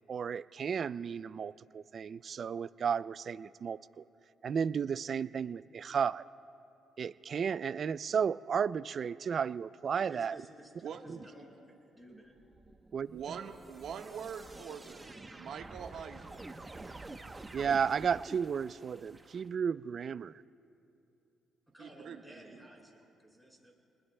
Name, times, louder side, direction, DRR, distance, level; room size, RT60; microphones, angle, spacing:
voice 1, 0.0-4.0 4.4-6.2 7.0-10.4 11.1-11.2 12.9-13.1 17.5-20.3, right 7 dB, 50° right, 17 dB, 0.3 m, -33 dB
voice 2, 9.9-11.5 12.0-12.3 21.7-23.7, right 1 dB, ahead, -2 dB, 4.0 m, -54 dB
sound 1, 12.4-19.5, right 2 dB, 20° right, 0.9 m, -49 dB
voice 3, 13.1-16.4 21.8-22.7, right 7 dB, 70° right, 4 dB, 1.3 m, -44 dB
29.5 x 20.5 x 2.2 m, 2.7 s
cardioid pair, 90°, 0 cm